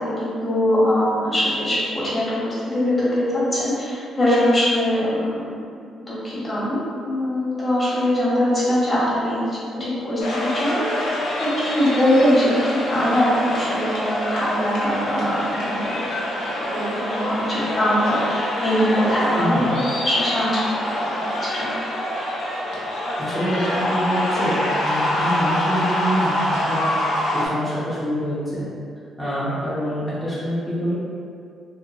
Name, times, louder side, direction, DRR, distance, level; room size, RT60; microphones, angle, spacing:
voice 1, 0.0-5.5 6.1-15.9 16.6-19.6 20.0-20.6 21.0-21.7, left 1 dB, 30° left, -9 dB, 1.0 m, -22 dB
sound 1, 10.2-27.5, left 1 dB, 75° left, 0.6 m, -25 dB
voice 2, 19.4-19.7 23.2-27.0 27.3-28.6 29.2-30.9, equal, 5° right, -11 dB, 0.6 m, -26 dB
2.9 x 2.2 x 2.3 m, 2.3 s
cardioid pair, 90°, 0 cm